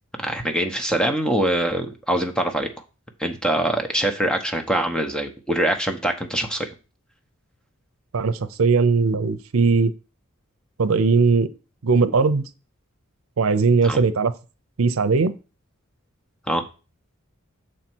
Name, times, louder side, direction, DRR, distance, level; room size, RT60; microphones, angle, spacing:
voice 1, 0.2-2.7 3.2-6.7 13.8-14.0 16.5-16.6, right 1 dB, 5° left, 5 dB, 0.9 m, -23 dB
voice 2, 8.1-9.9 10.8-11.5 11.8-12.4 13.4-14.3 14.8-15.3, right 4 dB, 85° right, 11 dB, 0.6 m, -19 dB
6.6 x 4.2 x 6.1 m, 0.32 s
head